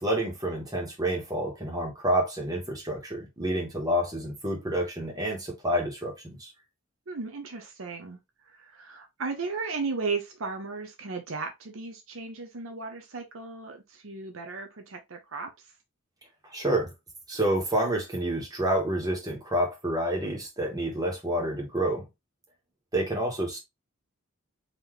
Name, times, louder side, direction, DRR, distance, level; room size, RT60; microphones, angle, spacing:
voice 1, 0.0-6.5 16.5-16.9 17.3-22.0 22.9-23.6, right 1 dB, 20° right, 1.6 m, -28 dB
voice 2, 7.1-8.2 8.5-15.5, right 4 dB, 70° right, 0.8 m, -35 dB
4.0 x 3.1 x 3.2 m
head